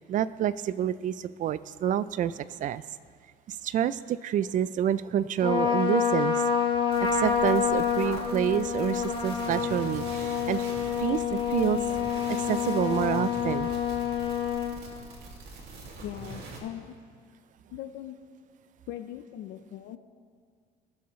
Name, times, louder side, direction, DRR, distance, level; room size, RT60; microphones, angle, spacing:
voice 1, 0.0-2.8 3.5-6.4 7.0-10.6 11.0-13.7, right 10 dB, 50° right, 16 dB, 0.4 m, -28 dB
Trumpet, 5.4-14.7, left 7 dB, 30° left, 1.5 m, -28 dB
sound 1, 6.9-16.6, right 2 dB, 75° right, 2.3 m, -43 dB
voice 2, 16.0-16.9 17.7-18.2 18.9-20.0, left 12 dB, 80° left, 7 dB, 0.6 m, -40 dB
21.0 x 7.1 x 3.1 m, 2.1 s
cardioid pair, 110°, 17 cm